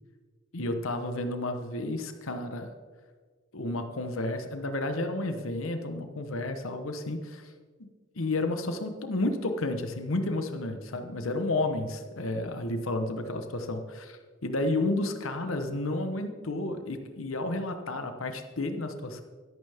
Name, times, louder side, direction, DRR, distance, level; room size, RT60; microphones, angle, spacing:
voice 1, 0.5-2.7 3.5-7.4 7.8-7.9 8.1-19.2, left 2 dB, 80° left, 7 dB, 1.0 m, -31 dB
12.5 x 11.0 x 3.5 m, 1.5 s
head